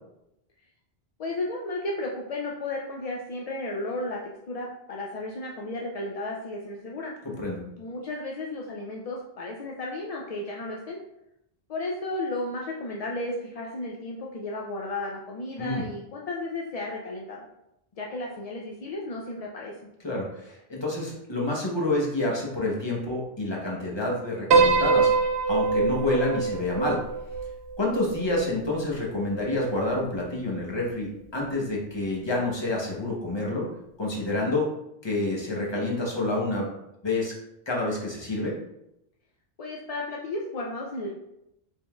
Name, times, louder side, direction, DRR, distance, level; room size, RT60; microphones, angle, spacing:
voice 1, 1.2-4.2 4.5-7.1 7.8-11.0 11.7-17.4 18.0-19.7 39.6-41.1, left 2 dB, 50° left, -2 dB, 0.4 m, -33 dB
voice 2, 7.2-7.6 15.6-15.9 20.0-25.1 25.5-27.0 27.8-33.7 34.0-34.7 35.0-36.7 37.0-37.3 37.7-38.5, left 2 dB, 25° left, -3 dB, 0.9 m, -28 dB
Piano, 24.5-28.9, right 4 dB, 90° right, 0.9 m, -24 dB
5.0 x 3.6 x 2.3 m, 0.84 s
omnidirectional pair, 1.1 m